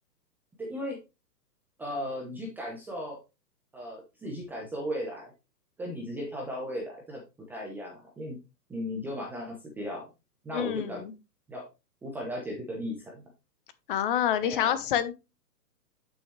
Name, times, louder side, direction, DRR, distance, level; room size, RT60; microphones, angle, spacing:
voice 1, 0.6-1.0 1.8-3.2 3.7-5.3 5.8-7.2 7.5-8.4 8.7-10.1 10.4-11.1 11.5-11.6 12.0-13.2 14.4-14.8, equal, 5° right, 0.7 m, -36 dB
voice 2, 10.5-11.1 13.9-15.1, left 10 dB, 30° left, 1.1 m, -27 dB
9.8 x 6.1 x 3.2 m
hypercardioid pair, 145°, 50 cm